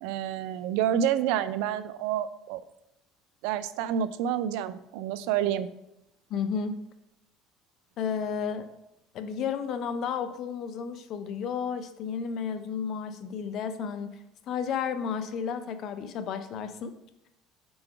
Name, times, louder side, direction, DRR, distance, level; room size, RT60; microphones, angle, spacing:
voice 1, 0.0-2.6 3.4-5.7, right 10 dB, 80° right, 13 dB, 0.4 m, -28 dB
voice 2, 6.3-6.7 8.0-8.7 9.1-16.9, left 6 dB, 50° left, 9 dB, 0.6 m, -32 dB
4.8 x 3.9 x 5.8 m, 0.84 s
cardioid pair, 130°, 0 cm